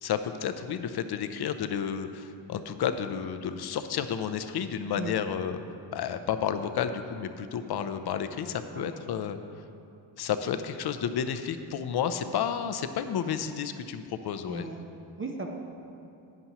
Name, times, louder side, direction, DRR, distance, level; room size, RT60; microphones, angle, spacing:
voice 1, 0.0-5.6 5.9-9.4 10.2-14.7, left 8 dB, 55° left, 9 dB, 0.6 m, -31 dB
voice 2, 8.7-9.3 14.5-14.8 15.2-15.5, right 3 dB, 25° right, 1 dB, 0.7 m, -38 dB
11.0 x 9.7 x 3.0 m, 2.6 s
cardioid pair, 135°, 47 cm